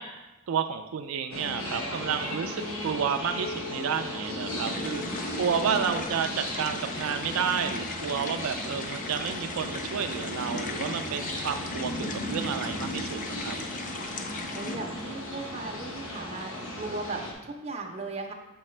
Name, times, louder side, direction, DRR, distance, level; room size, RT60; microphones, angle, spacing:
voice 1, 0.0-13.6, right 7 dB, 80° right, 7 dB, 0.3 m, -31 dB
sound 1, 1.3-17.3, left 1 dB, 70° left, 1.1 m, -35 dB
sound 2, 4.6-14.8, left 4 dB, 40° left, 0.5 m, -40 dB
voice 2, 14.5-16.5 16.8-18.3, right 3 dB, 30° right, 0 dB, 0.8 m, -37 dB
7.2 x 4.8 x 3.2 m, 1.1 s
head